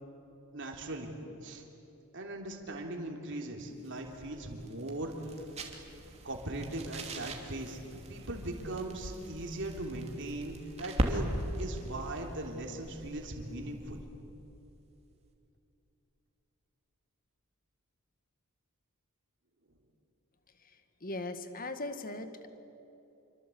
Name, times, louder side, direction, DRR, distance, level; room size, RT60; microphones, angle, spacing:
voice 1, 0.5-1.2 1.4-1.6 2.1-5.3 6.2-11.3 11.6-14.0, right 1 dB, 55° right, 1 dB, 3.3 m, -39 dB
sound 1, 3.6-14.3, right 1 dB, 30° right, 2.9 m, -40 dB
voice 2, 21.0-22.5, left 2 dB, 40° left, 9 dB, 1.7 m, -39 dB
27.0 x 24.5 x 8.5 m, 2.9 s
head